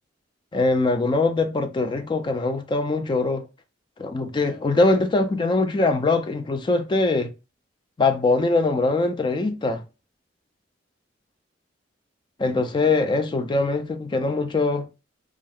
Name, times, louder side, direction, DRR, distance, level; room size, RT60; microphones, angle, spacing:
voice 1, 0.5-3.4 4.0-7.3 8.0-9.8 12.4-14.9, left 3 dB, 25° left, 0.3 m, -22 dB
2.4 x 2.0 x 3.5 m
head